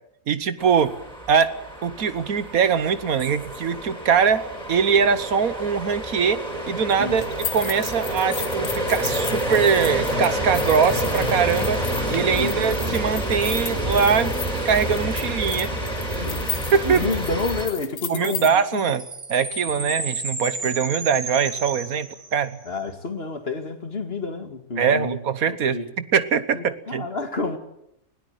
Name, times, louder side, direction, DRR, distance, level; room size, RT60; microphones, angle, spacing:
voice 1, 0.3-0.9 1.3-1.5 1.8-6.4 6.7-11.8 12.1-14.3 14.6-15.7 16.1-16.2 16.7-17.1 18.1-19.0 19.3-22.6 24.8-27.0, right 6 dB, 75° right, 1.6 m, -22 dB
sound 1, 0.6-17.7, right 1 dB, 30° right, 4.8 m, -28 dB
sound 2, 7.2-18.5, left 6 dB, 65° left, 1.8 m, -35 dB
voice 2, 12.2-12.6 16.2-16.5 16.8-19.0 19.8-19.9 22.7-25.2 25.5-25.9 26.5-27.6, left 3 dB, 45° left, 2.4 m, -30 dB
sound 3, 18.1-22.7, right 3 dB, 50° right, 2.5 m, -33 dB
20.5 x 17.5 x 9.3 m
omnidirectional pair, 1.5 m